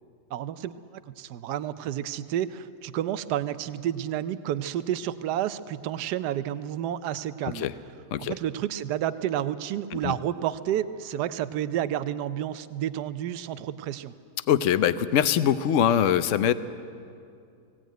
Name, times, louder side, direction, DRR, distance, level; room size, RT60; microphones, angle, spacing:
voice 1, 0.3-0.8 1.1-7.7 8.2-14.1, right 11 dB, 80° right, 12 dB, 1.2 m, -30 dB
voice 2, 14.5-16.5, left 9 dB, 60° left, 13 dB, 0.9 m, -22 dB
18.5 x 17.5 x 9.2 m, 2.5 s
omnidirectional pair, 1.8 m